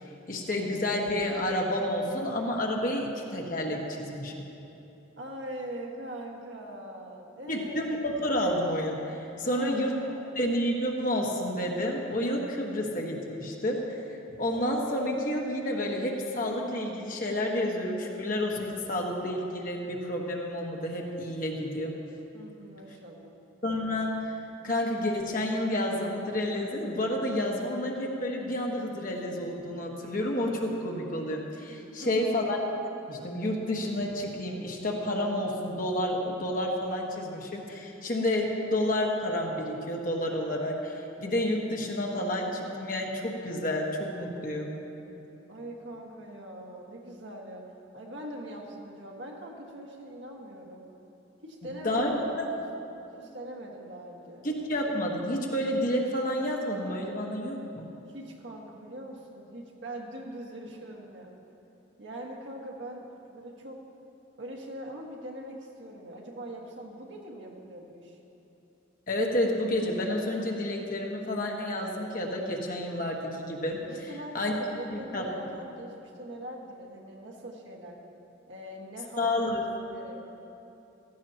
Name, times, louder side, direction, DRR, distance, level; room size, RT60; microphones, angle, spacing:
voice 1, 0.3-4.3 7.5-10.0 10.3-21.9 23.6-24.4 24.6-32.6 33.1-44.7 51.6-52.5 54.4-57.9 69.1-73.8 74.3-74.5 74.9-75.3 79.2-79.7, left 1 dB, 40° left, 0 dB, 1.3 m, -30 dB
voice 2, 5.2-7.8 9.4-10.3 22.3-23.4 31.9-32.4 45.5-47.6 47.9-50.8 51.4-52.6 53.2-54.5 58.1-61.3 62.0-63.8 64.4-68.2 73.9-78.0 78.5-79.5 79.9-80.2, right 1 dB, 60° right, -1 dB, 1.6 m, -42 dB
16.0 x 14.5 x 2.9 m, 3.0 s
head